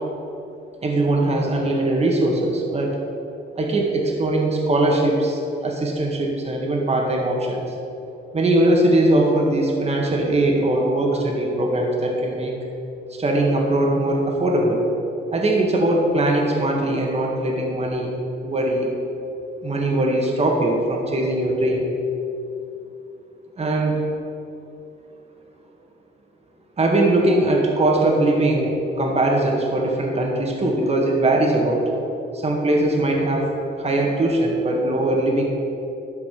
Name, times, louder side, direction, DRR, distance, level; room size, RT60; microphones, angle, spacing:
voice 1, 0.8-3.0 3.6-7.7 8.3-12.6 13.1-14.8 15.3-18.1 18.4-18.9 19.6-21.9 23.6-24.0 26.8-31.8 32.3-33.5 33.8-35.5, right 1 dB, 30° right, 0 dB, 1.8 m, -20 dB
11.5 x 5.8 x 6.0 m, 2.8 s
cardioid pair, 90°, 20 cm